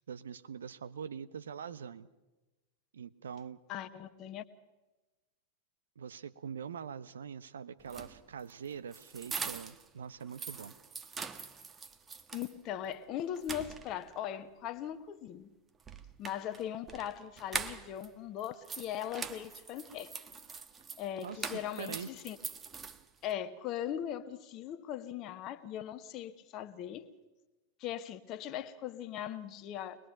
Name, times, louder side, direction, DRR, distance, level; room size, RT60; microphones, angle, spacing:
voice 1, 0.1-2.1 2.9-3.6 6.0-10.7 21.2-22.1, right 7 dB, 65° right, 0.9 m, -43 dB
voice 2, 3.7-4.4 12.3-15.5 16.2-20.1 21.0-22.4 23.2-27.2 27.8-30.0, left 10 dB, 35° left, 1.3 m, -39 dB
sound 1, 7.8-9.9 10.2-12.5 12.9-13.0 13.4-14.2 15.8-18.1 18.4-23.3, right 5 dB, 20° right, 1.3 m, -43 dB
23.5 x 20.5 x 5.9 m
figure-of-eight pair, 90°, 0 cm